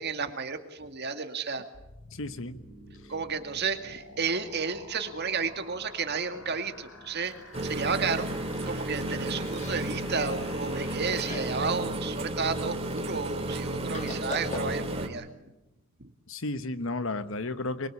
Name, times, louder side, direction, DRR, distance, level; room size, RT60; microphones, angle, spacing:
voice 1, 0.0-1.6 3.1-7.3 7.6-8.3 8.7-15.3 16.0-16.1, right 5 dB, 55° right, 8 dB, 2.1 m, -32 dB
sound 1, 1.7-11.7, left 2 dB, 85° left, 6.1 m, -49 dB
voice 2, 2.1-2.6 16.3-17.9, left 2 dB, 70° left, 12 dB, 1.3 m, -33 dB
Chewing mastication, 7.1-15.0, left 2 dB, 35° left, 2.2 m, -45 dB
sound 2, 7.5-15.1, right 1 dB, 30° right, 2.6 m, -33 dB
23.5 x 23.0 x 8.6 m, 0.96 s
head